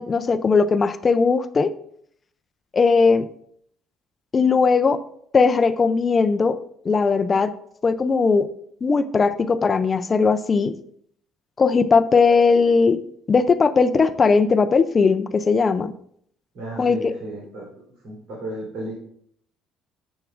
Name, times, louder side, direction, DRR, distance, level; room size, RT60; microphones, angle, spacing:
voice 1, 0.0-1.7 2.7-3.3 4.3-5.0 5.3-6.6 6.9-7.5 7.8-8.5 8.8-10.7 11.6-13.0 13.3-15.9 16.8-17.1, left 4 dB, 25° left, 11 dB, 0.4 m, -18 dB
voice 2, 16.5-17.7 18.0-18.9, right 1 dB, 70° right, -6 dB, 3.4 m, -33 dB
10.0 x 7.1 x 2.4 m, 0.66 s
cardioid pair, 160°, 0 cm